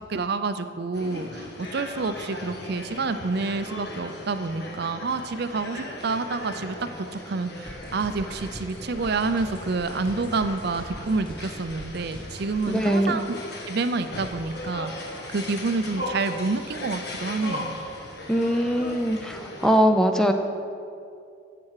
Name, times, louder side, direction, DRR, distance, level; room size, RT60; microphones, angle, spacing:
voice 1, 0.1-13.4 13.7-14.9 15.3-17.7, right 3 dB, 55° right, 10 dB, 0.5 m, -28 dB
sound 1, 0.9-19.8, left 1 dB, 55° left, 1.3 m, -38 dB
sound 2, 7.7-12.7, equal, 25° left, 1.9 m, -41 dB
voice 2, 12.7-13.2 18.3-20.3, equal, 5° left, 5 dB, 0.4 m, -21 dB
13.0 x 7.7 x 4.8 m, 2.5 s
head